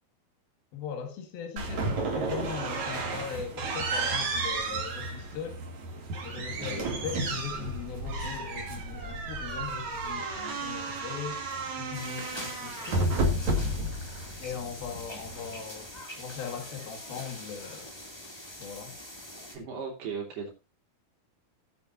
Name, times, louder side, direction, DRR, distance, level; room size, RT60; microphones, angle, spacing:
voice 1, 0.7-5.6 6.2-11.4 11.7-13.2 14.4-15.9 16.2-17.9 18.6-19.0, left 7 dB, 70° left, 3.7 m, -39 dB
sound 1, 1.6-15.6, right 2 dB, 50° right, 3.6 m, -32 dB
voice 2, 6.6-6.9 19.5-20.5, right 5 dB, 80° right, 5.2 m, -37 dB
sound 2, 11.9-19.6, left 1 dB, 10° left, 1.2 m, -43 dB
17.5 x 8.3 x 2.6 m
omnidirectional pair, 4.5 m